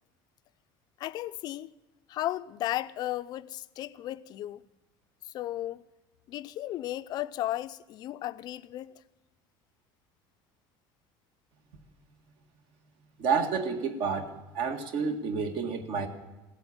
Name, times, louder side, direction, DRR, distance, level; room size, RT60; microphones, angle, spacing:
voice 1, 1.0-1.7 2.1-4.6 5.3-5.8 6.3-9.0, left 14 dB, 40° left, 0.5 m, -35 dB
voice 2, 13.2-14.3 14.5-16.1, right 5 dB, 55° right, 1.9 m, -29 dB
17.0 x 7.9 x 9.7 m
cardioid pair, 160°, 11 cm